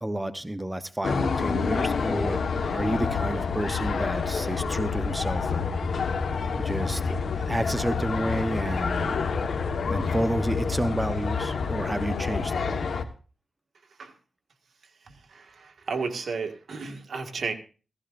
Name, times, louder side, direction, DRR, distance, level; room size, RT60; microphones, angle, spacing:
voice 1, 0.0-2.4 2.7-5.7 6.6-9.2 9.9-12.8, right 1 dB, 15° right, 10 dB, 0.9 m, -30 dB
sound 1, 1.0-13.0, left 5 dB, 85° left, 1.2 m, -28 dB
voice 2, 15.3-17.5, right 4 dB, 80° right, 4 dB, 1.7 m, -33 dB
16.0 x 15.0 x 2.5 m, 0.36 s
cardioid pair, 70°, 0 cm